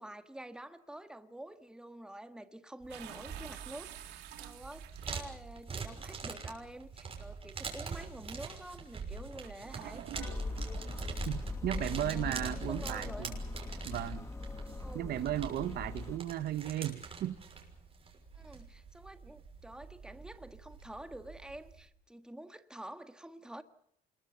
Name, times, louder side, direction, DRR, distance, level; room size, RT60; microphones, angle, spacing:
voice 1, 0.0-10.1 11.7-13.3 14.8-15.2 18.3-23.6, right 1 dB, 5° right, 1.6 m, -48 dB
sound 1, 2.8-21.9, right 5 dB, 35° right, 6.2 m, -45 dB
sound 2, 2.9-5.6 6.5-6.6 9.4-11.0, right 12 dB, 85° right, 3.1 m, -48 dB
sound 3, 10.1-16.2, left 3 dB, 15° left, 1.7 m, -40 dB
voice 2, 11.2-13.4 13.9-14.3 14.9-17.4, right 12 dB, 65° right, 1.2 m, -35 dB
27.0 x 22.0 x 6.9 m
cardioid pair, 110°, 17 cm